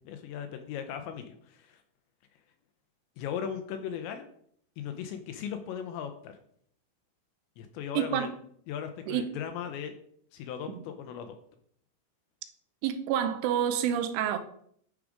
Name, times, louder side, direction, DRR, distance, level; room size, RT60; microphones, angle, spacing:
voice 1, 0.0-1.8 3.2-4.3 4.8-6.4 7.6-8.3 8.7-10.0 10.3-11.4, left 8 dB, 85° left, 7 dB, 2.7 m, -38 dB
voice 2, 8.0-8.3 9.1-9.4 10.7-10.8 12.8-14.4, right 9 dB, 85° right, 9 dB, 3.1 m, -28 dB
10.5 x 5.0 x 4.9 m, 0.65 s
omnidirectional pair, 5.6 m